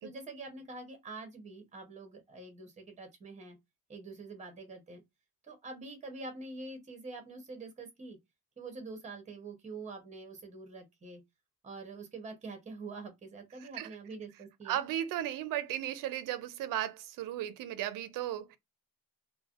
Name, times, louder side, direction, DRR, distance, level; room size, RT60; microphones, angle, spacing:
voice 1, 0.0-3.6 3.9-5.0 5.5-8.2 8.6-11.2 11.6-14.8, right 3 dB, 20° right, 0.8 m, -45 dB
voice 2, 13.6-13.9 14.7-18.6, right 12 dB, 60° right, 0.5 m, -35 dB
3.2 x 2.1 x 2.3 m
cardioid pair, 175°, 37 cm